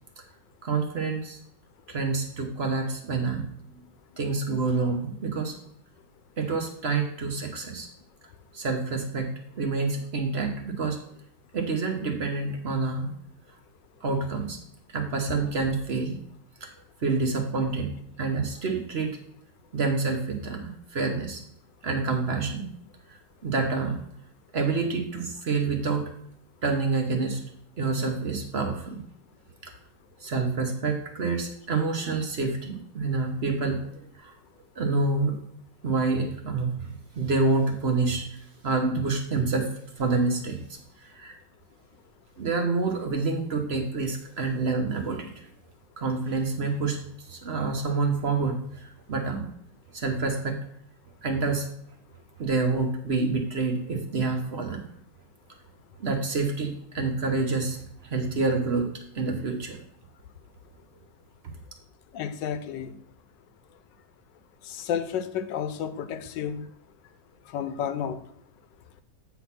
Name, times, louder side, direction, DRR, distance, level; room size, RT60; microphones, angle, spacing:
voice 1, 0.6-1.4 1.9-3.4 3.7-3.8 4.2-5.5 6.4-7.9 8.5-11.0 11.5-13.1 14.0-14.6 14.9-16.2 16.6-16.7 17.0-17.9 18.2-19.1 19.7-21.4 21.8-22.7 23.1-24.0 24.5-26.1 26.6-27.4 27.8-29.0 29.6-29.7 30.2-34.3 34.8-35.4 35.8-41.4 42.4-45.5 46.0-49.5 49.9-50.6 51.2-51.7 52.4-54.8 56.0-58.9 59.1-59.8, right 3 dB, 50° right, 3 dB, 0.8 m, -28 dB
voice 2, 62.1-62.9 64.6-66.7 67.5-68.2, left 8 dB, 80° left, 11 dB, 1.3 m, -31 dB
8.2 x 3.8 x 5.8 m, 0.68 s
omnidirectional pair, 2.0 m